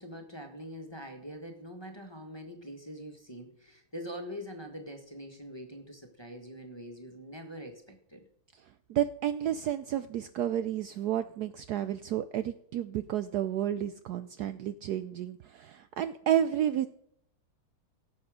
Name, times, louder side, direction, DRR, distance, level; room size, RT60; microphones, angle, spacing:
voice 1, 0.0-8.2 15.0-15.1, equal, 15° left, 2 dB, 1.4 m, -44 dB
voice 2, 8.9-16.9, right 11 dB, 85° right, 12 dB, 0.8 m, -31 dB
17.5 x 7.2 x 5.0 m, 0.69 s
omnidirectional pair, 2.4 m